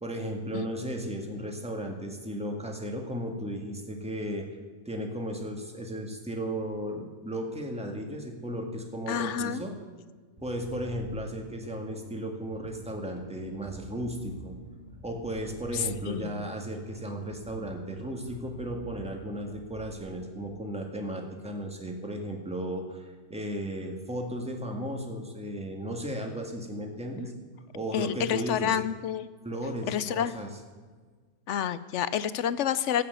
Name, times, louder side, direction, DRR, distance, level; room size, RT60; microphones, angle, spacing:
voice 1, 0.0-4.4 4.9-9.7 10.4-14.6 15.0-27.3 27.7-28.7 29.4-30.5, equal, 5° right, 2 dB, 1.7 m, -35 dB
voice 2, 9.1-9.6 15.7-16.4 27.9-29.3 29.9-30.5 31.5-33.0, left 9 dB, 65° left, 15 dB, 0.7 m, -29 dB
Bass guitar, 10.4-20.0, right 4 dB, 25° right, 1.9 m, -46 dB
14.5 x 8.6 x 8.2 m, 1.5 s
omnidirectional pair, 1.7 m